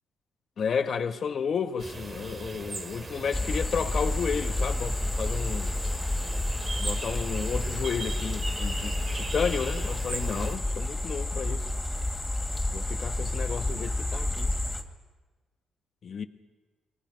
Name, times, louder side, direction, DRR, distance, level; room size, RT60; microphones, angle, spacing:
voice 1, 0.6-5.7 6.8-11.7 12.7-14.5 16.0-16.2, left 6 dB, 50° left, 1.3 m, -32 dB
sound 1, 1.8-10.6, right 3 dB, 35° right, 2.1 m, -39 dB
sound 2, 3.3-14.8, left 1 dB, 10° left, 2.7 m, -30 dB
28.0 x 21.0 x 5.2 m
cardioid pair, 90°, 0 cm